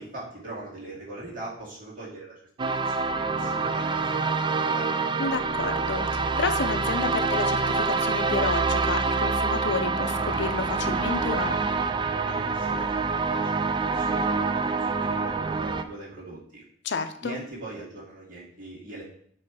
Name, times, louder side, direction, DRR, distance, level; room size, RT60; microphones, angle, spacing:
voice 1, 0.0-4.9 12.3-16.6 17.2-19.0, right 2 dB, 45° right, -6 dB, 2.2 m, -41 dB
sound 1, 2.6-15.8, right 4 dB, 25° right, 0.3 m, -26 dB
voice 2, 5.2-11.6 16.8-17.4, left 4 dB, 65° left, 9 dB, 0.5 m, -30 dB
7.4 x 3.1 x 4.7 m, 0.64 s
head